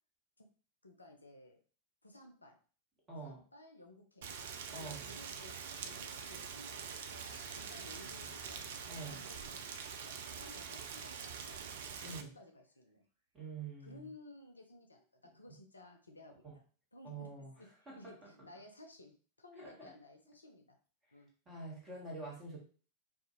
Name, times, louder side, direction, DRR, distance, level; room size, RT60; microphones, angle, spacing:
voice 1, 0.8-1.6 2.0-2.6 3.2-4.3 4.8-8.6 9.1-9.6 10.0-11.6 12.0-13.0 13.8-16.6 16.9-17.3 17.6-17.7 17.9-20.8 21.1-21.3, left 1 dB, 80° left, 4 dB, 0.4 m, -56 dB
voice 2, 3.1-3.4 4.7-5.1 8.9-9.2 12.0-12.3 13.3-14.1 15.5-15.6 16.4-16.5 17.0-17.5 17.9-18.3 19.5-19.9 21.5-22.6, right 3 dB, 20° right, -3 dB, 1.2 m, -46 dB
Rain, 4.2-12.2, right 6 dB, 55° right, 0.3 m, -45 dB
sound 1, 7.1-12.4, left 3 dB, 80° right, 0.9 m, -61 dB
2.4 x 2.3 x 2.9 m, 0.40 s
figure-of-eight pair, 90°, 0 cm